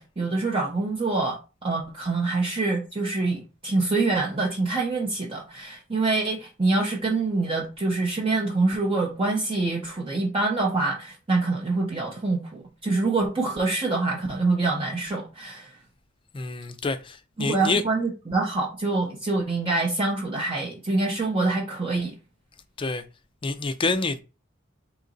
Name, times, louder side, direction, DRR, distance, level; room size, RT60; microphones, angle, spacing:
voice 1, 0.0-15.8 17.4-22.1, right 3 dB, 25° right, 0.6 m, -25 dB
voice 2, 16.3-17.8 22.8-23.0 23.4-24.2, left 3 dB, 25° left, 0.4 m, -27 dB
3.9 x 2.9 x 3.9 m
head